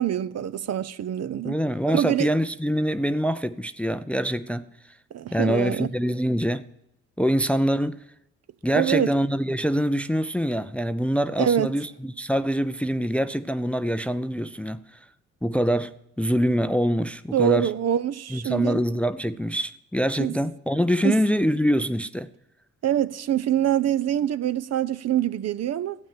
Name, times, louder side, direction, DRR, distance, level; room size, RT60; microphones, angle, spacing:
voice 1, 0.0-1.5 1.9-2.3 5.1-5.9 8.7-9.1 11.4-11.7 17.3-18.8 20.2-20.3 21.0-21.2 22.8-26.0, right 10 dB, 45° right, 0.6 m, -24 dB
voice 2, 1.4-4.7 5.3-6.7 7.2-8.0 8.6-14.8 15.4-17.7 18.3-22.3, equal, 5° left, 0.5 m, -24 dB
12.5 x 8.6 x 7.2 m
hypercardioid pair, 50°, 35 cm